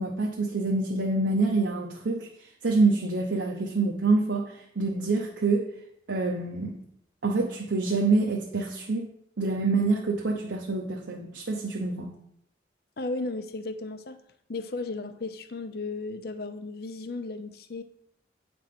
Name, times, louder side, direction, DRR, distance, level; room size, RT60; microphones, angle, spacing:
voice 1, 0.0-2.3 2.6-5.7 6.1-6.8 7.2-9.1 9.4-12.1, right 3 dB, 75° right, -1 dB, 0.8 m, -26 dB
voice 2, 13.0-14.2 14.5-17.8, left 3 dB, 55° left, 10 dB, 0.6 m, -35 dB
8.7 x 3.4 x 5.8 m, 0.73 s
head